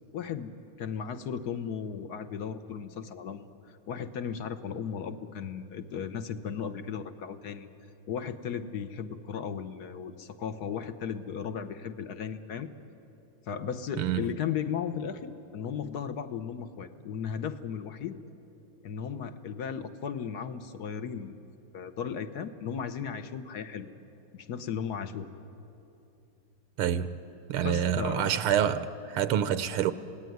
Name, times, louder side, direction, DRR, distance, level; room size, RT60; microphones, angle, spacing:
voice 1, 0.1-0.5 0.8-7.7 8.1-12.7 13.5-18.2 18.8-21.3 21.7-23.9 24.3-25.3 27.6-28.4, left 7 dB, 55° left, 1.3 m, -36 dB
voice 2, 14.0-14.4 26.8-27.1 27.5-29.9, right 9 dB, 80° right, 1.6 m, -27 dB
27.0 x 18.5 x 9.4 m
omnidirectional pair, 2.4 m